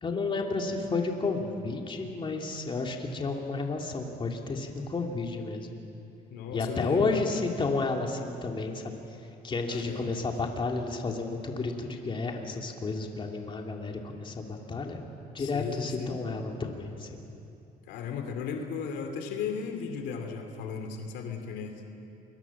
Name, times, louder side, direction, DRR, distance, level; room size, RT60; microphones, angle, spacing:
voice 1, 0.0-5.7 6.5-8.9 9.4-15.0 15.3-17.2, left 3 dB, 30° left, 2 dB, 2.9 m, -31 dB
voice 2, 6.3-7.2 9.7-10.3 15.4-16.2 17.9-21.7, left 6 dB, 85° left, 5 dB, 2.7 m, -36 dB
29.0 x 22.5 x 7.4 m, 2.8 s
cardioid pair, 110°, 17 cm